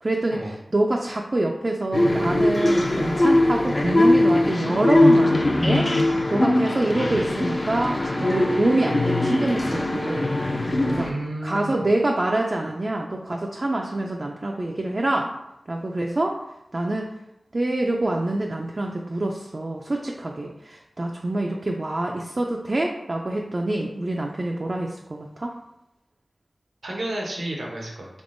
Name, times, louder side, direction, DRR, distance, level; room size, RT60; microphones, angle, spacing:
voice 1, 0.0-5.9 6.3-10.3 10.9-11.1 11.4-15.3 15.7-16.4 16.7-17.1 17.5-25.5, right 2 dB, 45° right, 0 dB, 0.3 m, -26 dB
sound 1, 1.9-11.1, left 1 dB, 45° left, 0.4 m, -21 dB
voice 2, 10.9-11.8 26.8-28.1, right 1 dB, 85° right, -2 dB, 0.8 m, -31 dB
3.5 x 3.4 x 2.5 m, 0.85 s
wide cardioid pair, 65°, 0 cm